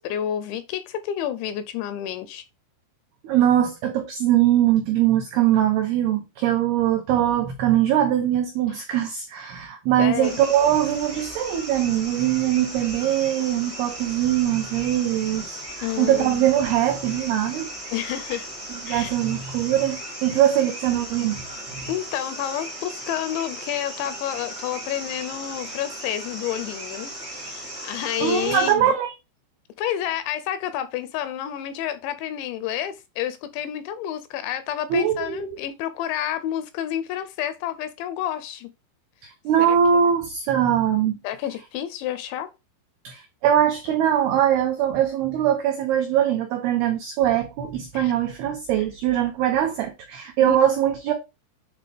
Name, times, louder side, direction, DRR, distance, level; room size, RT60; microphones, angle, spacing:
voice 1, 0.0-2.4 10.0-10.3 15.8-16.4 17.9-18.5 18.9-19.2 21.9-28.9 29.8-38.7 39.6-39.8 41.2-42.5 47.9-48.1 50.4-50.6, left 11 dB, 80° left, 2.7 m, -29 dB
voice 2, 3.2-17.7 18.9-21.4 21.7-21.9 28.2-29.1 34.9-35.6 39.2-41.2 43.0-51.1, right 10 dB, 85° right, 2.2 m, -22 dB
sound 1, 10.2-28.7, right 1 dB, 55° right, 0.6 m, -37 dB
8.4 x 3.3 x 3.5 m
omnidirectional pair, 5.5 m